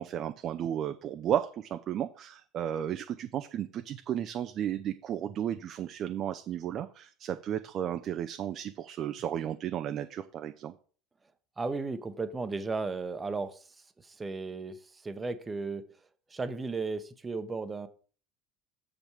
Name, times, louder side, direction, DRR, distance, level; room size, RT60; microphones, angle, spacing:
voice 1, 0.0-10.7, right 10 dB, 40° right, 9 dB, 0.5 m, -33 dB
voice 2, 11.6-15.8 16.3-17.9, right 3 dB, 20° right, 11 dB, 0.9 m, -35 dB
7.1 x 5.3 x 5.0 m, 0.41 s
figure-of-eight pair, 70°, 0 cm